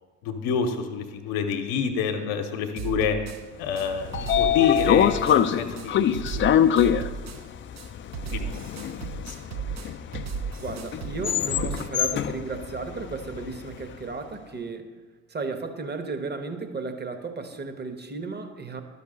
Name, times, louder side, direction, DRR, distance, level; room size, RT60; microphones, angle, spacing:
voice 1, 0.2-3.2 3.6-6.5 8.3-9.4, left 7 dB, 65° left, 5 dB, 0.9 m, -28 dB
sound 1, 2.8-3.4 3.8-3.9 4.1-5.4 5.8-5.9 6.1-7.4 7.8-7.9 8.1-11.9, right 6 dB, 45° right, 0.6 m, -35 dB
Train / Sliding door, 3.7-13.9, left 10 dB, 30° left, 0.4 m, -25 dB
voice 2, 10.6-14.9 15.3-18.8, right 4 dB, 25° right, 7 dB, 1.1 m, -34 dB
11.5 x 5.7 x 3.8 m, 1.4 s
hypercardioid pair, 55°, 39 cm